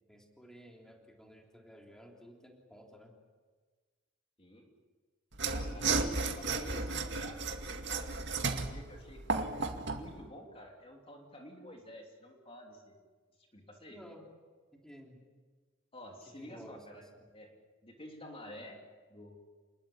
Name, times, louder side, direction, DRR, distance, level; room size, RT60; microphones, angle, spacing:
voice 1, 0.1-3.2 5.7-6.3 13.9-14.2 14.7-15.2 16.4-17.0, equal, 5° left, 0 dB, 3.3 m, -53 dB
Mechanisms / Sawing, 5.3-10.1, right 4 dB, 60° right, 2.2 m, -34 dB
voice 2, 5.5-7.4 7.7-9.2 9.9-13.0 13.4-14.0 15.9-17.0 17.3-17.5 17.8-18.8 19.1-19.4, left 1 dB, 30° left, 1 dB, 3.1 m, -50 dB
28.5 x 21.0 x 8.7 m, 1.5 s
head